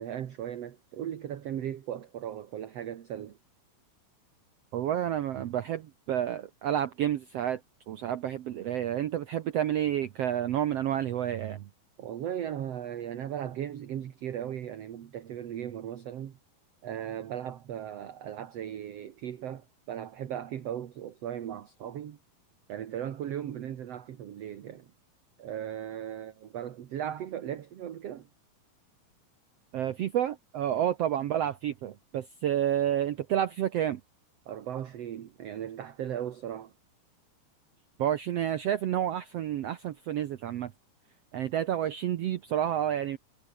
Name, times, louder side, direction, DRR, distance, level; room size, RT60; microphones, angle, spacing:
voice 1, 0.0-3.4 12.0-16.4 16.8-22.2 22.7-24.9 25.4-28.3 34.5-36.7, right 10 dB, 55° right, 2.1 m, -37 dB
voice 2, 4.7-7.6 7.9-11.6 29.7-34.0 38.0-40.7 41.3-43.2, right 11 dB, 85° right, 1.4 m, -30 dB
omnidirectional pair, 4.1 m